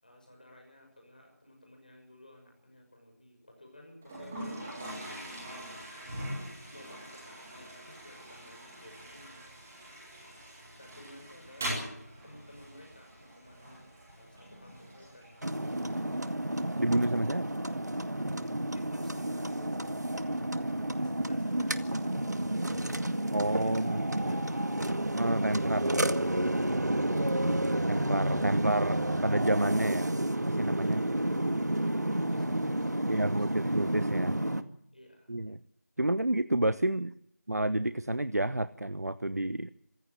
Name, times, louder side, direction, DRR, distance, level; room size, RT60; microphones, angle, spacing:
voice 1, 0.0-5.4 6.7-9.5 10.8-11.8 12.2-16.0 18.7-20.5 20.7-23.1 23.6-24.8 30.8-34.0 34.9-35.3, left 1 dB, 30° left, 2 dB, 6.3 m, -54 dB
Toilet flush, 4.0-21.0, right 1 dB, 5° right, 2.3 m, -44 dB
sound 1, 15.4-34.6, right 1 dB, 85° right, 2.1 m, -30 dB
voice 2, 16.8-17.5 23.3-24.0 25.1-26.0 27.9-30.2 30.5-31.0 33.1-34.4 35.3-35.6 36.0-37.1 37.5-39.7, right 1 dB, 70° right, 15 dB, 1.0 m, -29 dB
27.0 x 15.5 x 7.7 m, 0.72 s
figure-of-eight pair, 180°, 9 cm